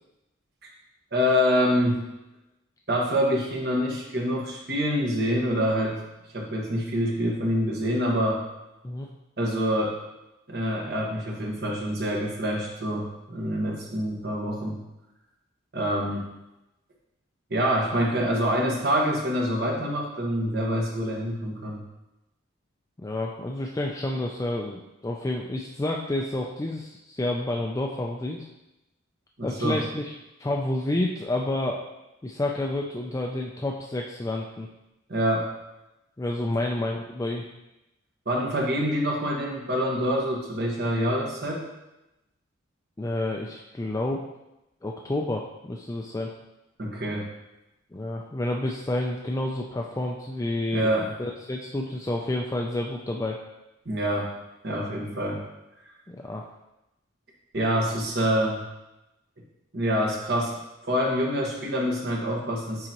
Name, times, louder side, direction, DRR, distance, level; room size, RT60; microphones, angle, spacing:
voice 1, 1.1-2.1 2.9-6.0 6.3-8.4 9.4-9.9 10.5-14.8 15.7-16.3 17.5-21.8 29.4-29.8 35.1-35.5 36.4-36.6 38.2-41.6 46.8-47.3 50.7-51.1 53.8-54.3 54.6-55.4 57.5-58.6 59.7-60.5 60.9-62.9, equal, 55° right, -2 dB, 1.4 m, -26 dB
voice 2, 23.0-28.5 29.4-30.1 30.4-31.8 32.2-34.7 36.2-37.5 43.0-44.3 44.8-46.3 47.9-50.9 51.2-53.4 56.1-56.4, left 1 dB, 15° left, 0 dB, 0.4 m, -29 dB
9.5 x 3.9 x 3.0 m, 0.95 s
head